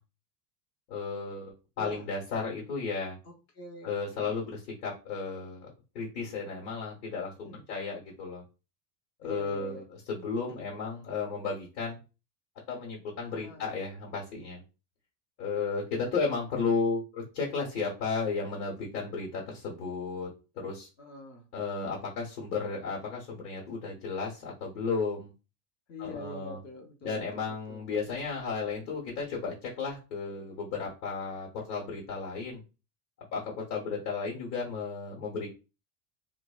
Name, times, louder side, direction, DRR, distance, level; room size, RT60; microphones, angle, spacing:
voice 1, 0.9-3.2 3.8-8.4 9.2-9.8 10.1-12.0 12.7-14.6 15.4-20.3 20.5-20.9 21.5-25.3 26.0-26.6 27.0-32.6 33.3-35.5, left 4 dB, 85° left, -3 dB, 1.1 m, -34 dB
voice 2, 1.8-2.1 3.2-4.5 7.4-7.7 9.2-9.8 10.3-10.6 13.3-13.7 21.0-21.5 25.9-27.8, left 2 dB, 35° left, 2 dB, 0.7 m, -45 dB
2.6 x 2.0 x 2.3 m, 0.31 s
supercardioid pair, 110°, 45 cm